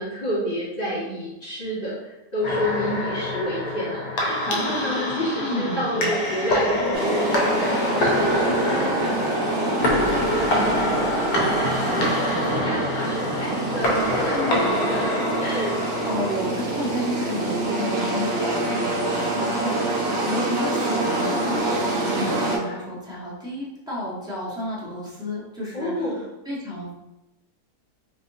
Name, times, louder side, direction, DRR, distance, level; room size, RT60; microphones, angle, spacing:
voice 1, 0.0-12.1 12.6-15.8 25.7-26.2, equal, 35° left, -9 dB, 1.5 m, -29 dB
sound 1, 2.4-16.4, left 1 dB, 80° left, 1.3 m, -25 dB
voice 2, 5.4-6.1 14.3-15.2 15.8-21.7 22.0-26.2 26.4-26.9, left 1 dB, 5° right, -7 dB, 0.8 m, -32 dB
sound 2, 6.9-22.6, right 2 dB, 60° right, 1.3 m, -26 dB
4.1 x 3.0 x 2.6 m, 0.95 s
omnidirectional pair, 1.7 m